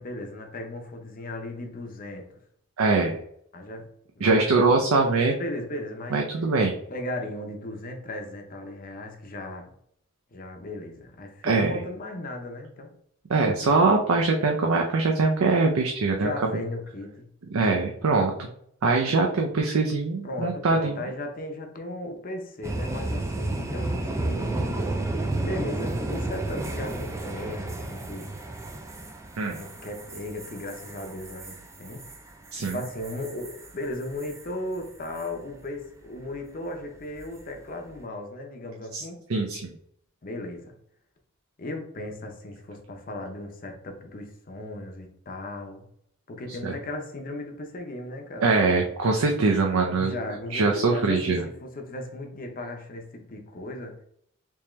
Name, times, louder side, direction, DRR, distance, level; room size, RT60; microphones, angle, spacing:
voice 1, 0.0-2.3 3.5-3.9 4.2-6.3 6.9-9.7 10.3-12.9 16.2-17.3 20.2-24.9 25.4-28.3 29.5-32.1 32.7-39.2 40.2-40.8 41.6-45.8 46.3-48.9 49.9-54.0, left 1 dB, 40° left, 0.6 m, -36 dB
voice 2, 2.8-3.2 4.2-5.3 6.1-6.7 11.4-11.7 13.3-16.3 17.5-18.5 18.8-21.0 29.4-29.6 32.5-32.8 38.9-39.0 39.3-39.7 46.6-46.7 48.4-50.1 50.5-51.4, right 3 dB, 80° right, 0.5 m, -22 dB
sound 1, 22.6-34.5 34.8-35.2 37.2-37.5, right 2 dB, 15° right, 0.3 m, -32 dB
3.6 x 2.8 x 3.1 m
head